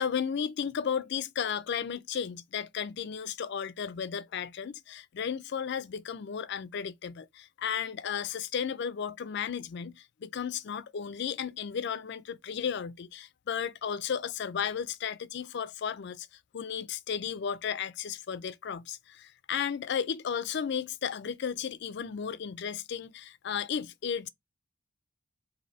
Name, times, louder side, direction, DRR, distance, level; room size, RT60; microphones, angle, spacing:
voice 1, 0.0-16.3 16.5-24.3, left 7 dB, 55° left, 0.4 m, -34 dB
4.0 x 2.6 x 4.2 m
head